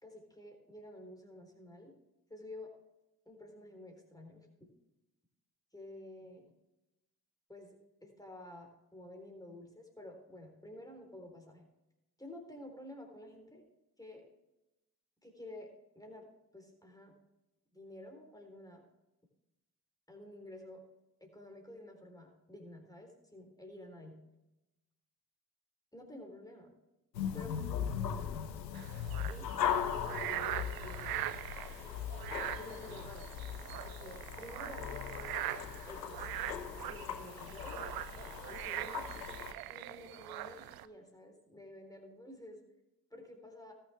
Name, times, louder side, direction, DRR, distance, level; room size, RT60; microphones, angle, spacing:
voice 1, 0.0-2.0 2.3-2.7 3.3-4.5 5.7-6.5 7.5-11.6 12.2-13.7 14.0-14.2 15.2-15.7 16.0-16.3 16.5-17.1 17.7-18.8 20.1-20.8 21.2-24.2 25.9-26.7 27.3-28.5 29.3-29.5 29.8-31.2 32.5-33.3 33.8-35.3 35.8-37.8 38.5-39.1 39.7-42.6 43.1-43.7, left 1 dB, 5° left, 2 dB, 4.0 m, -51 dB
sound 1, 27.1-39.5, left 8 dB, 85° left, 0.8 m, -39 dB
sound 2, 28.7-40.9, right 14 dB, 45° right, 0.7 m, -42 dB
19.0 x 6.9 x 3.5 m, 0.96 s
figure-of-eight pair, 45°, 49 cm